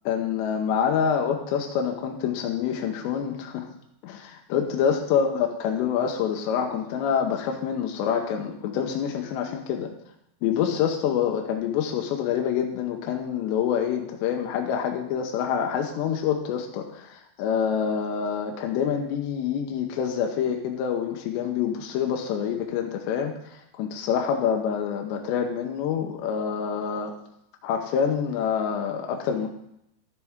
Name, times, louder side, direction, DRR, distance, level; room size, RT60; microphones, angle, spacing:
voice 1, 0.1-3.7 4.0-9.9 10.4-27.1 27.6-29.5, left 7 dB, 80° left, 2 dB, 3.0 m, -26 dB
12.5 x 7.5 x 3.6 m, 0.79 s
omnidirectional pair, 5.2 m